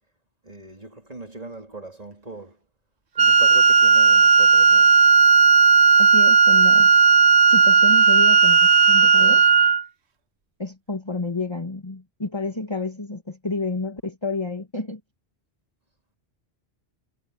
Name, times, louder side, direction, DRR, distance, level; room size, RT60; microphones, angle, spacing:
voice 1, 0.4-2.6 3.2-4.9, right 2 dB, 35° right, 3.7 m, -40 dB
Wind instrument woodwind instrument, 3.2-9.8, right 5 dB, 80° right, 1.4 m, -15 dB
voice 2, 6.0-6.9 7.5-9.4 10.6-15.0, left 3 dB, 25° left, 1.7 m, -30 dB
omnidirectional pair, 1.1 m